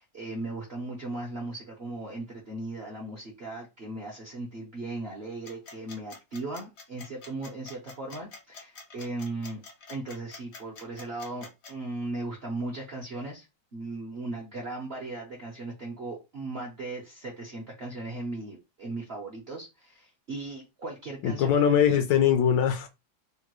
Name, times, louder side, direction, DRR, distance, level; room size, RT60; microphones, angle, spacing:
voice 1, 0.0-9.6 9.9-13.5 13.7-21.8, right 2 dB, 55° right, 0.6 m, -37 dB
sound 1, 5.4-11.7, left 4 dB, 55° left, 0.7 m, -46 dB
voice 2, 21.2-22.9, left 8 dB, 75° left, 1.1 m, -22 dB
3.6 x 2.2 x 3.0 m
omnidirectional pair, 2.2 m